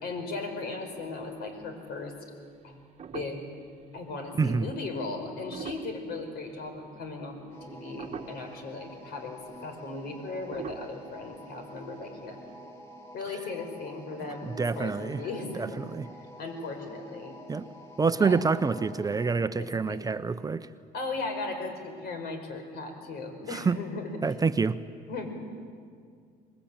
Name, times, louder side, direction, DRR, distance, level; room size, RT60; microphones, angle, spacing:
voice 1, 0.0-2.1 2.6-2.8 3.1-3.5 3.9-7.4 7.7-12.4 13.1-15.8 16.4-17.4 18.2-18.4 19.6-20.0 20.9-24.2 25.1-25.3, left 3 dB, 70° left, 5 dB, 5.3 m, -37 dB
sound 1, 0.9-1.7 2.1-2.2 2.6-3.7 4.1-4.3 5.3-6.8 7.2-7.6 8.0-8.6 9.1-9.2 9.4-9.6 10.4-12.0 12.3-12.4, right 7 dB, 40° right, 1.2 m, -44 dB
voice 2, 4.4-4.7 14.4-15.2 15.6-16.1 17.5-17.7 18.0-20.7 23.5-23.8 24.2-24.8, right 4 dB, 20° right, 11 dB, 0.7 m, -27 dB
sound 2, 7.5-19.4, right 1 dB, 15° left, 3.1 m, -48 dB
24.5 x 20.5 x 8.9 m, 2.2 s
cardioid pair, 110°, 17 cm